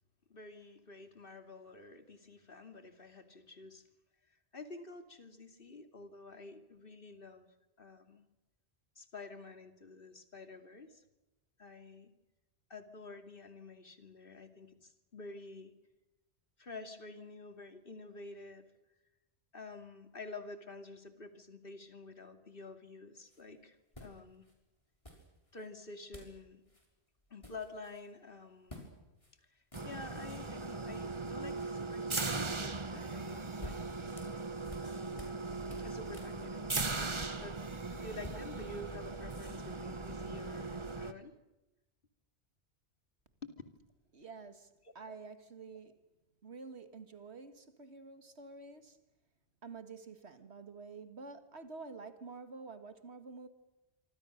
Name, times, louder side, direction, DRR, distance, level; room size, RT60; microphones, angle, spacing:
voice 1, 0.3-3.8 4.5-7.5 7.8-8.2 9.0-11.0 11.6-12.1 12.7-15.7 16.6-18.6 19.5-24.4 25.5-26.6 27.3-28.8 29.5-33.8 34.8-35.4 35.8-37.6 38.0-41.3 43.4-43.5 44.8-44.9, left 3 dB, 55° left, 2.9 m, -49 dB
sound 1, 23.2-23.4 23.9-24.5 25.0-25.7 26.1-26.4 26.7-26.9 27.2-28.1 28.7-28.9 29.2-29.3 29.6-30.3 33.2-35.4 35.7-37.7 38.0-39.7, equal, 30° left, 6.0 m, -52 dB
sound 2, 29.7-41.1, right 3 dB, 30° right, 1.2 m, -39 dB
voice 2, 44.1-46.0 46.4-49.0 49.6-53.5, right 4 dB, 80° right, 2.2 m, -49 dB
26.5 x 25.5 x 6.6 m
omnidirectional pair, 1.1 m